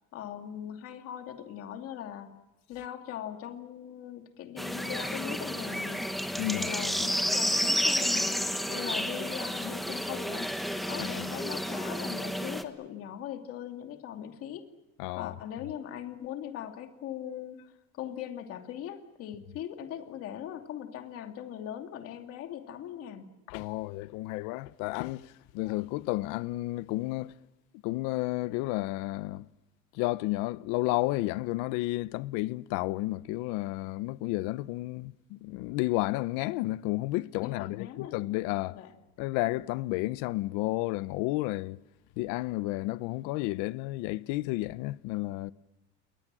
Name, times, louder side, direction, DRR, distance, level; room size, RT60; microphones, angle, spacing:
voice 1, 0.1-2.4 2.7-6.1 6.5-8.4 8.7-10.5 10.9-14.6 15.2-17.6 17.9-23.3 37.4-38.1 38.7-38.9, left 10 dB, 45° left, 2.7 m, -40 dB
sound 1, 4.6-12.6, equal, ahead, 1.2 m, -31 dB
voice 2, 15.0-15.3 23.5-27.3 27.8-29.5 29.9-38.8 39.2-41.8 42.2-45.5, left 19 dB, 80° left, 0.9 m, -32 dB
29.5 x 22.0 x 7.6 m
cardioid pair, 180°, 32 cm